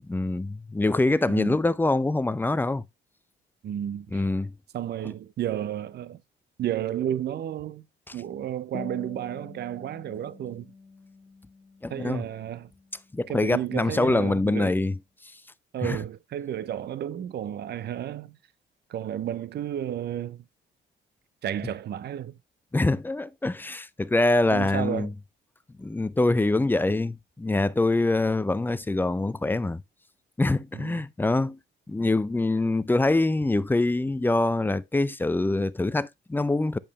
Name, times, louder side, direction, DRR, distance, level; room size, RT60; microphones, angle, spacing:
voice 1, 0.1-2.8 4.1-4.5 11.8-12.2 13.1-14.9 15.8-16.0 22.7-25.1 25.8-29.8 30.4-31.6 31.9-36.8, left 2 dB, 10° left, 0.4 m, -24 dB
voice 2, 1.3-1.6 3.6-4.3 4.7-6.2 6.6-7.9 8.1-10.7 11.9-12.7 13.3-14.8 15.7-18.4 18.9-20.4 21.4-22.4 24.5-25.1 30.7-31.0, right 11 dB, 55° right, 0.6 m, -32 dB
sound 1, 8.7-13.7, left 4 dB, 30° left, 1.0 m, -46 dB
8.7 x 5.4 x 3.0 m
cardioid pair, 90°, 20 cm